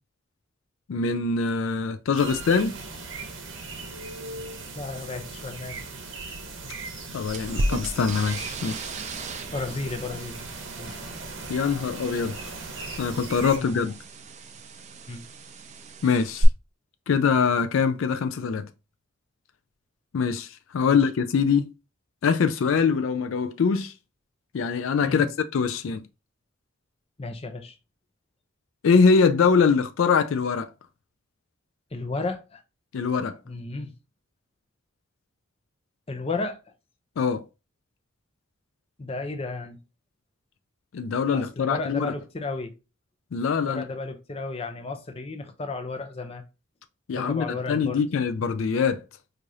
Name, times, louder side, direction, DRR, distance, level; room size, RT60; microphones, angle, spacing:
voice 1, 0.9-2.8 7.1-8.9 11.5-12.4 13.0-13.9 16.0-16.5 17.1-18.7 20.1-21.7 22.2-23.9 24.5-25.3 25.5-26.0 28.8-30.7 32.9-33.4 37.2-37.4 40.9-42.1 43.3-43.8 47.1-49.0, left 5 dB, 80° left, 0.4 m, -23 dB
sound 1, 2.2-13.6, right 3 dB, 70° right, 0.9 m, -38 dB
voice 2, 4.7-5.8 9.5-10.5 10.8-11.1 11.6-11.8 13.5-13.8 15.1-15.3 20.8-21.1 25.0-25.3 27.2-27.8 31.9-32.6 33.5-33.9 36.1-36.6 39.0-39.8 41.3-42.8 43.7-46.4 47.1-48.1, left 3 dB, 30° left, 0.5 m, -33 dB
sound 2, 7.3-16.4, right 2 dB, 35° right, 0.4 m, -36 dB
4.7 x 2.5 x 2.7 m
head